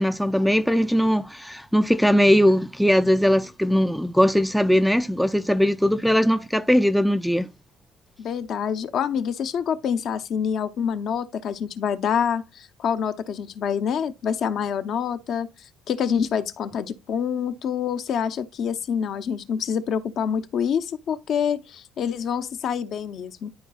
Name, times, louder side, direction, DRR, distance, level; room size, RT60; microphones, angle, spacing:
voice 1, 0.0-7.5, equal, ahead, 0.3 m, -20 dB
voice 2, 8.2-15.5 15.9-23.5, left 7 dB, 55° left, 0.6 m, -26 dB
12.0 x 4.0 x 2.3 m
cardioid pair, 110°, 0 cm